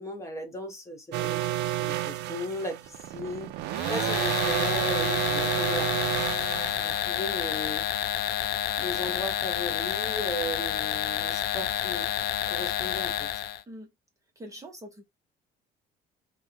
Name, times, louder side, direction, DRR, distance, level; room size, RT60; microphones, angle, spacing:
voice 1, 0.0-5.9 6.8-7.9 8.8-12.1 12.5-13.3, equal, 15° left, 1.2 m, -36 dB
sound 1, 1.1-7.0, right 14 dB, 85° right, 0.4 m, -30 dB
sound 2, 3.7-13.6, left 11 dB, 85° left, 0.5 m, -29 dB
voice 2, 14.4-15.0, equal, 20° right, 0.8 m, -43 dB
3.5 x 2.2 x 2.7 m
cardioid pair, 110°, 17 cm